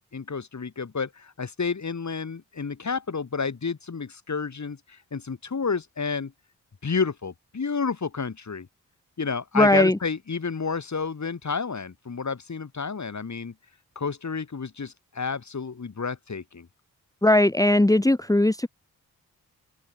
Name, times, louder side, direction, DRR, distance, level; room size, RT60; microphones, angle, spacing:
voice 1, 0.1-6.3 6.8-8.7 9.2-13.5 13.9-16.7, left 5 dB, 50° left, 6.6 m, -30 dB
voice 2, 9.6-10.0 17.2-18.7, left 1 dB, 10° left, 1.7 m, -19 dB
supercardioid pair, 45°, 37 cm